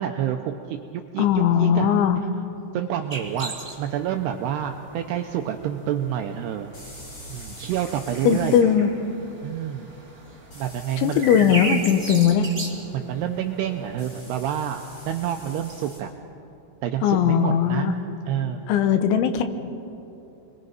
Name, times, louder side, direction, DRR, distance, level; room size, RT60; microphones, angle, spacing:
voice 1, 0.0-1.9 2.7-6.7 7.3-8.6 9.4-9.9 10.6-11.6 12.9-16.1 16.8-18.0 18.3-18.6, right 10 dB, 85° right, 4 dB, 2.4 m, -28 dB
voice 2, 1.2-2.2 8.2-8.9 11.0-12.5 17.0-18.0 18.7-19.4, left 8 dB, 80° left, 8 dB, 3.4 m, -19 dB
sound 1, 3.1-15.8, right 2 dB, 20° right, 1.9 m, -38 dB
sound 2, 3.3-3.4 6.7-8.6 10.5-12.3 14.0-16.0, left 1 dB, 20° left, 5.8 m, -44 dB
29.5 x 22.0 x 5.3 m, 2.9 s
omnidirectional pair, 5.6 m